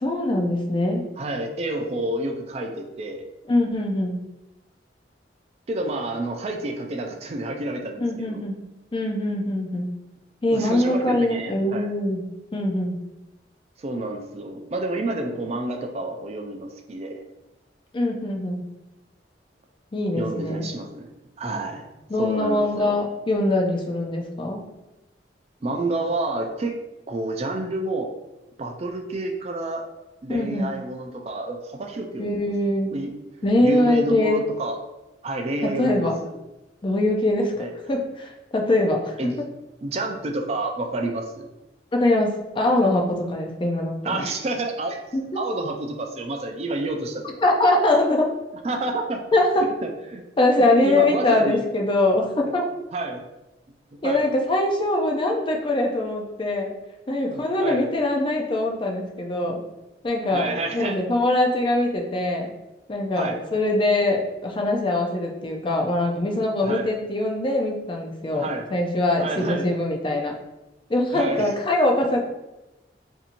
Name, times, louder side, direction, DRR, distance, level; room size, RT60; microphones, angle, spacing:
voice 1, 0.0-1.0 3.5-4.2 8.0-8.7 8.9-9.9 10.4-12.2 12.5-13.0 17.9-18.6 19.9-20.6 22.1-24.6 30.3-30.8 32.2-32.9 33.4-34.5 35.6-36.2 36.8-39.2 41.9-44.2 45.1-45.2 47.4-48.3 49.3-49.7 50.4-52.7 54.0-56.7 57.1-59.6 60.0-60.5 60.7-62.5 62.9-70.3 70.9-72.2, left 1 dB, 25° left, 1 dB, 0.4 m, -23 dB
voice 2, 1.2-3.3 5.7-8.4 10.5-11.9 13.8-17.2 20.1-21.1 21.4-21.9 22.2-23.0 25.6-26.7 27.1-28.1 28.6-29.8 30.2-32.5 32.9-33.1 33.6-34.8 35.2-36.3 37.6-37.7 39.2-39.4 39.8-41.5 44.0-45.0 45.3-47.4 48.6-49.2 49.6-50.2 50.5-51.6 52.4-52.5 52.9-53.2 53.9-54.2 57.3-57.8 60.3-61.0 63.2-63.4 66.6-66.9 68.3-68.7 69.2-69.7 71.1-71.5, right 2 dB, 35° right, 3 dB, 0.4 m, -29 dB
4.2 x 2.7 x 2.5 m, 1.0 s
head